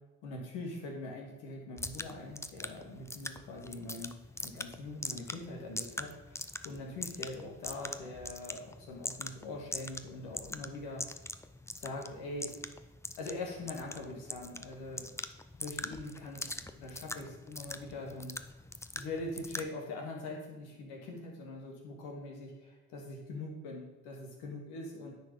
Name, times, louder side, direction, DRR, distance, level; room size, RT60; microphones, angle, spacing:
voice 1, 0.2-4.2 4.4-11.1 11.8-12.5 13.2-15.2 15.6-18.4 18.9-25.1, left 2 dB, 80° left, 0 dB, 1.8 m, -43 dB
sound 1, 1.8-19.7, left 2 dB, 5° left, 0.5 m, -43 dB
9.3 x 4.6 x 5.4 m, 1.1 s
hypercardioid pair, 45°, 40 cm